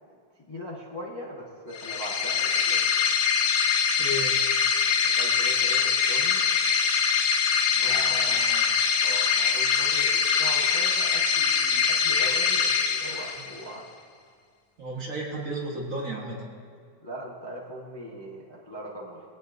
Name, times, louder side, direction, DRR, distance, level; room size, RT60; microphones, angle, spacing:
voice 1, 0.5-2.9 5.2-6.4 7.7-8.4 9.0-13.9 17.0-19.2, equal, 15° left, -4 dB, 0.9 m, -40 dB
sound 1, 1.7-13.7, left 6 dB, 65° left, 1.2 m, -23 dB
voice 2, 4.0-4.4 7.8-8.7 14.8-16.4, right 1 dB, 45° right, -2 dB, 1.6 m, -34 dB
20.5 x 8.5 x 2.6 m, 2.2 s
omnidirectional pair, 2.1 m